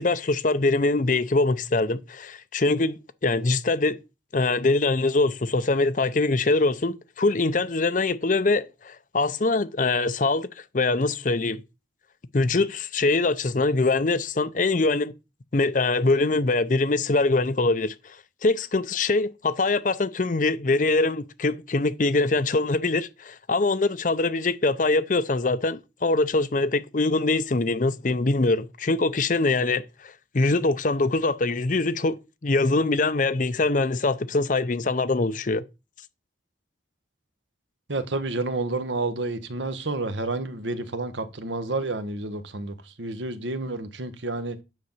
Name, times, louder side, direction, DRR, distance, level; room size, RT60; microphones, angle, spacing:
voice 1, 0.0-4.0 4.3-11.6 12.3-15.1 15.5-18.2 18.4-32.2 32.4-35.6, left 3 dB, 45° left, 0.6 m, -23 dB
voice 2, 37.9-44.6, right 2 dB, 75° right, 1.1 m, -30 dB
9.5 x 3.9 x 7.2 m
head